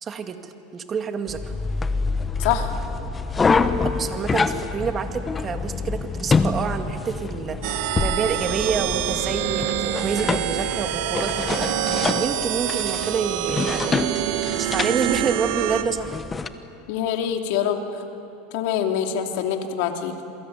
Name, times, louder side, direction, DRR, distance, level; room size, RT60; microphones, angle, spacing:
voice 1, 0.0-1.5 3.8-7.6 8.0-11.7 12.2-14.1 14.6-16.2, right 6 dB, 25° right, 6 dB, 2.0 m, -28 dB
sound 1, 1.3-16.5, left 4 dB, 15° left, 1.2 m, -27 dB
voice 2, 2.4-2.7 16.9-17.8 18.5-20.1, left 9 dB, 65° left, 4 dB, 2.9 m, -24 dB
sound 2, 7.6-15.8, right 11 dB, 65° right, 1.8 m, -26 dB
28.0 x 22.5 x 9.4 m, 2.8 s
supercardioid pair, 135°, 0 cm